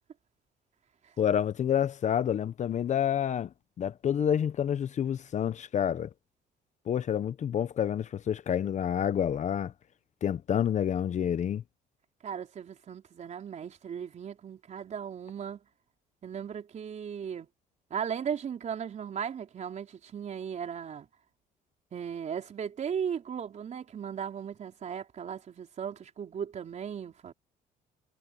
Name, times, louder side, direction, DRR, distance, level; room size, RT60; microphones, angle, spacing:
voice 1, 1.2-3.5 3.8-6.1 6.9-9.7 10.2-11.6, left 9 dB, 45° left, 0.9 m, -28 dB
voice 2, 12.2-15.6 16.2-17.5 17.9-21.1 21.9-27.3, right 8 dB, 45° right, 4.4 m, -37 dB
cardioid pair, 110°, 17 cm